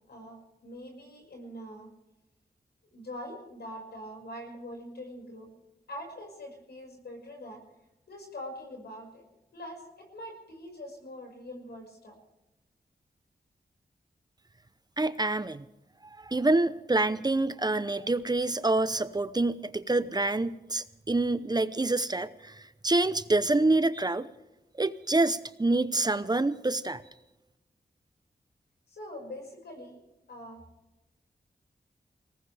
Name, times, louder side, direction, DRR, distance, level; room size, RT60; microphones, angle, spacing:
voice 1, 0.1-1.9 2.9-5.5 5.9-7.6 8.1-9.2 9.5-12.2 28.9-30.0 30.3-30.6, left 1 dB, 90° left, 2 dB, 5.8 m, -43 dB
voice 2, 15.0-15.6 16.1-24.3 24.8-27.0, right 2 dB, 25° right, 14 dB, 0.7 m, -27 dB
22.5 x 19.0 x 3.4 m, 0.97 s
wide cardioid pair, 90°, 17 cm